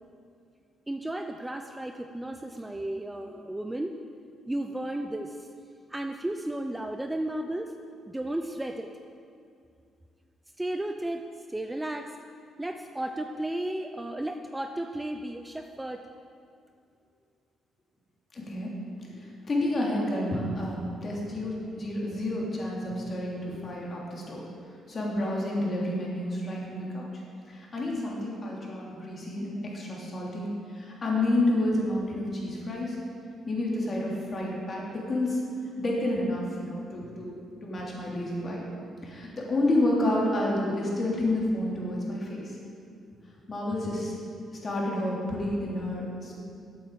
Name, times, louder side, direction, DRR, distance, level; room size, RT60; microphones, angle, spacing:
voice 1, 0.9-4.0 4.5-5.5 5.9-7.8 8.1-8.9 10.6-12.1 12.6-16.0, right 1 dB, 10° right, 5 dB, 0.6 m, -34 dB
voice 2, 18.3-18.7 19.5-24.4 24.9-27.1 27.5-33.0 33.5-35.4 35.8-37.3 37.6-38.6 39.0-42.5 43.5-44.1 44.5-46.3, left 1 dB, 40° left, -3 dB, 3.2 m, -29 dB
8.6 x 8.2 x 7.6 m, 2.4 s
cardioid pair, 90°, 0 cm